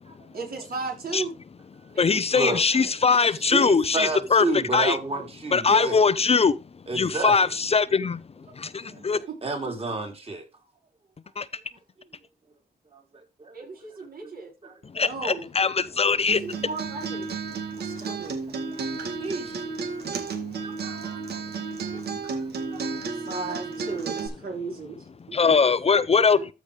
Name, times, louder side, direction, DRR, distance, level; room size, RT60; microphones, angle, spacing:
voice 1, 0.3-1.3 1.9-2.9 8.9-9.1 13.5-14.5 15.0-15.5 16.4-17.3 17.8-18.4 23.1-25.0 25.3-25.6, right 3 dB, 65° right, 4.7 m, -35 dB
voice 2, 2.0-5.0 5.5-6.5 6.9-8.2 8.6-8.7 9.0-9.2 11.4-11.5 15.0-16.4 25.3-26.4, left 5 dB, 40° left, 0.6 m, -21 dB
voice 3, 3.5-6.0 6.9-7.3 8.9-10.4 12.9-13.5 14.6-14.8 18.0-18.1 18.7-19.6 20.0-20.1 20.6-21.4 21.9-22.0 22.7-22.9 23.3-23.4 25.9-26.0 26.3-26.4, right 3 dB, 40° right, 3.5 m, -31 dB
Acoustic guitar, 16.3-24.3, right 5 dB, 90° right, 1.9 m, -32 dB
13.5 x 5.0 x 3.3 m
cardioid pair, 95°, 16 cm